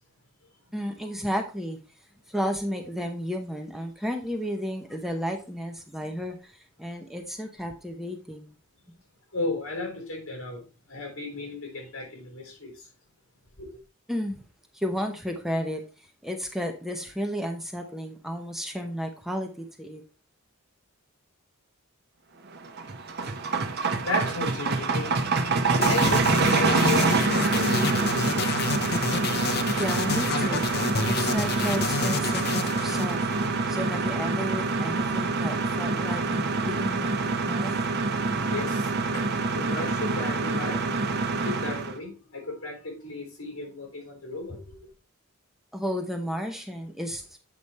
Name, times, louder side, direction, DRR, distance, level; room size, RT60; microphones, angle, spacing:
voice 1, 0.7-1.8 2.3-8.5 14.1-14.4 14.7-15.8 16.2-20.0 29.8-30.7 31.0-33.2 33.7-37.8 45.7-47.4, equal, ahead, 0.8 m, -32 dB
voice 2, 9.3-12.9 13.6-13.7 24.0-29.8 38.5-40.8 41.4-44.6, left 2 dB, 70° left, 3.8 m, -35 dB
sound 1, 22.6-42.0, right 3 dB, 50° right, 0.9 m, -26 dB
sound 2, 25.8-33.9, left 4 dB, 45° left, 0.7 m, -29 dB
8.2 x 5.0 x 4.1 m
head